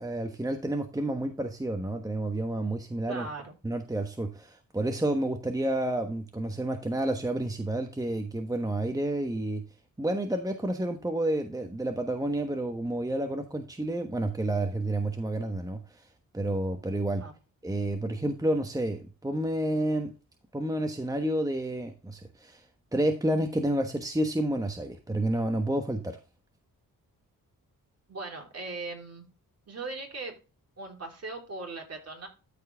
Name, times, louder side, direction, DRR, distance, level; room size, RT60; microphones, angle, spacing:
voice 1, 0.0-3.3 3.6-9.6 10.0-16.0 16.3-17.2 17.6-20.1 20.5-22.6 22.9-26.2, right 1 dB, 10° right, 5 dB, 1.2 m, -30 dB
voice 2, 3.1-3.5 17.2-17.4 28.1-29.3 29.7-30.4 30.8-32.3, right 3 dB, 45° right, 1 dB, 3.6 m, -39 dB
13.0 x 4.6 x 3.5 m, 0.31 s
cardioid pair, 75°, 35 cm